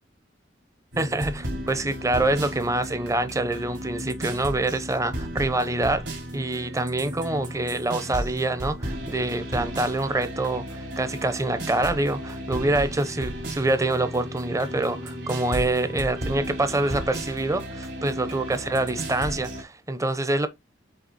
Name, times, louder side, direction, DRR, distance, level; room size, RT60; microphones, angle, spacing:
sound 1, 0.9-19.6, equal, 70° right, 3.6 m, -34 dB
voice 1, 1.0-6.0 6.3-20.5, right 2 dB, 15° right, 0.8 m, -26 dB
7.8 x 3.3 x 4.1 m
head